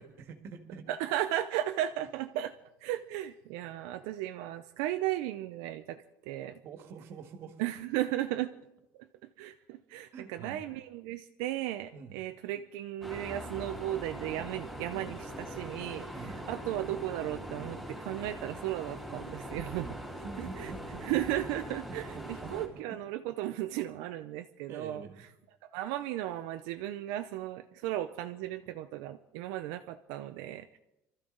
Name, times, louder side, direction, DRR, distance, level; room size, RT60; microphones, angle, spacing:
voice 1, 0.0-0.9 6.6-7.6 10.1-10.7 11.9-12.2 16.1-16.4 20.2-23.0 24.7-25.3, right 5 dB, 45° right, 7 dB, 1.7 m, -46 dB
voice 2, 0.9-2.5 2.8-6.6 7.6-8.5 8.9-9.1 9.4-16.1 16.5-20.0 20.4-20.7 21.0-25.0 25.7-30.7, right 13 dB, 80° right, 7 dB, 0.6 m, -35 dB
sound 1, 13.0-22.7, equal, ahead, 3.4 m, -42 dB
24.5 x 13.5 x 3.9 m, 0.90 s
cardioid pair, 175°, 6 cm